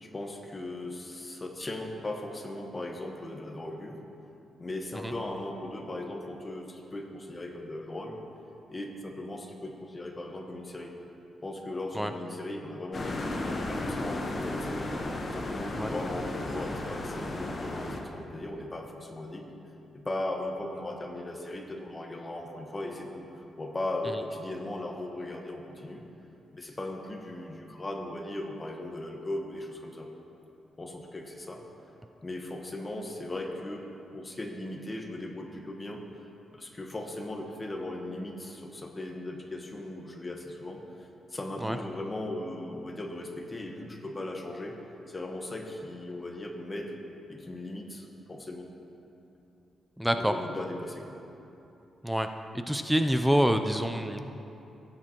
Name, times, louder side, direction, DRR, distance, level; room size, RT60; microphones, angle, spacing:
voice 1, 0.0-4.0 4.6-8.2 8.7-11.0 11.4-15.0 15.3-19.4 19.9-23.3 23.6-26.0 26.5-30.1 30.8-31.6 32.2-33.9 34.1-36.0 36.5-44.8 45.1-47.0 47.3-48.6 50.1-51.1, left 1 dB, 20° left, 2 dB, 1.2 m, -38 dB
sound 1, 12.9-18.0, left 2 dB, 40° left, 1.1 m, -34 dB
voice 2, 50.0-50.3 52.0-52.3 52.7-54.2, equal, 5° right, 7 dB, 0.4 m, -26 dB
17.0 x 8.5 x 3.0 m, 2.9 s
cardioid pair, 115°, 0 cm